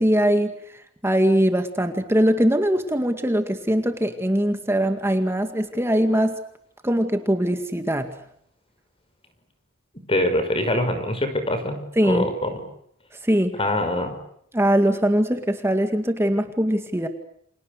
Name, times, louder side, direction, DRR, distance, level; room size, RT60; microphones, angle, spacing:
voice 1, 0.0-6.4 6.8-8.2 12.0-12.3 13.2-13.6 14.5-17.1, equal, 10° right, 7 dB, 2.0 m, -21 dB
voice 2, 10.1-11.8 12.0-12.6 13.6-14.1, left 1 dB, 30° left, 8 dB, 5.7 m, -23 dB
29.5 x 27.5 x 6.6 m, 0.69 s
head